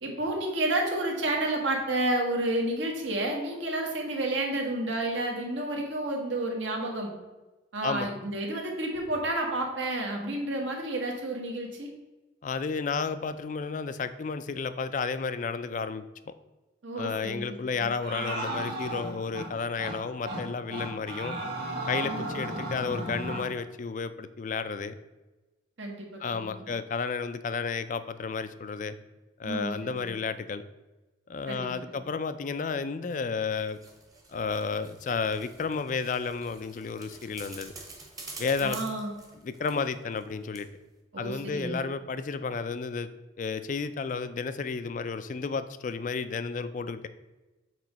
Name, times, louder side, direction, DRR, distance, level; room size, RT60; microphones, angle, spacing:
voice 1, 0.0-7.1 7.7-11.9 16.8-17.9 22.0-22.2 25.8-26.5 29.4-30.1 31.5-32.0 38.6-39.1 41.1-41.8, right 1 dB, 75° right, 1 dB, 1.4 m, -30 dB
voice 2, 12.4-16.3 17.0-21.4 21.9-25.0 26.2-28.9 29.4-30.6 31.3-33.8 34.3-37.7 38.4-38.8 39.4-40.7 41.2-43.1 43.4-47.1, left 5 dB, 40° left, 12 dB, 0.3 m, -32 dB
sound 1, 18.0-19.5 19.8-20.0 20.2-20.4 20.7-23.5, right 1 dB, 55° right, 2.1 m, -34 dB
sound 2, 33.3-40.3 40.5-40.6, right 3 dB, 20° right, 0.9 m, -47 dB
7.4 x 3.1 x 5.1 m, 1.1 s
head